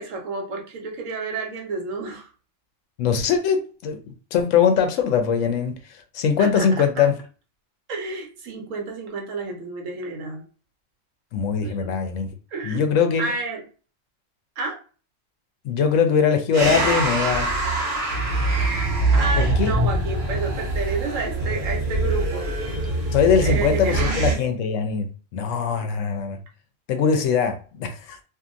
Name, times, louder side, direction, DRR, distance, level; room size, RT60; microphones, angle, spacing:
voice 1, 0.0-2.3 6.4-7.1 7.9-10.4 11.6-11.9 12.5-12.8 13.2-13.6 14.6-14.8 19.1-22.5 23.4-24.2, right 4 dB, 80° right, 1.1 m, -30 dB
voice 2, 3.0-5.8 6.1-7.1 11.3-12.3 12.6-13.2 15.6-17.5 19.4-19.7 23.1-26.4 26.9-28.2, left 6 dB, 80° left, 1.0 m, -21 dB
sound 1, 16.5-24.4, right 2 dB, 50° right, 0.8 m, -23 dB
2.7 x 2.5 x 2.4 m
omnidirectional pair, 1.3 m